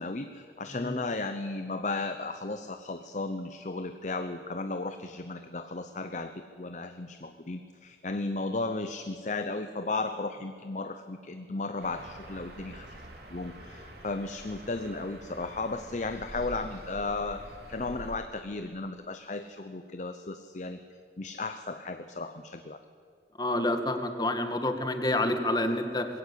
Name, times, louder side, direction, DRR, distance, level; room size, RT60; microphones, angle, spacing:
voice 1, 0.0-13.0 13.3-20.8 21.2-22.8, left 3 dB, 40° left, 9 dB, 0.7 m, -35 dB
sound 1, 11.8-18.1, right 1 dB, 65° right, 3.2 m, -46 dB
voice 2, 23.4-26.1, left 1 dB, 25° left, 7 dB, 1.5 m, -28 dB
21.0 x 16.5 x 8.3 m, 2.2 s
head